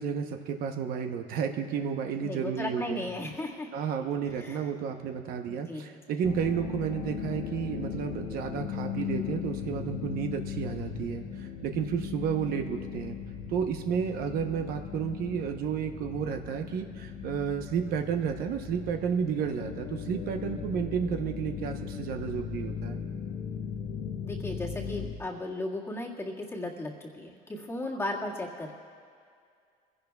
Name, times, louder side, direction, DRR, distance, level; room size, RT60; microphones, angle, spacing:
voice 1, 0.0-3.1 3.7-13.2 13.5-23.0, right 7 dB, 60° right, 5 dB, 0.9 m, -32 dB
voice 2, 2.2-3.7 4.2-4.7 5.5-6.0 24.2-28.7, left 2 dB, 15° left, -3 dB, 1.8 m, -36 dB
sound 1, 6.2-25.2, left 7 dB, 60° left, 1.0 m, -38 dB
23.0 x 16.0 x 2.3 m, 2.3 s
cardioid pair, 135°, 17 cm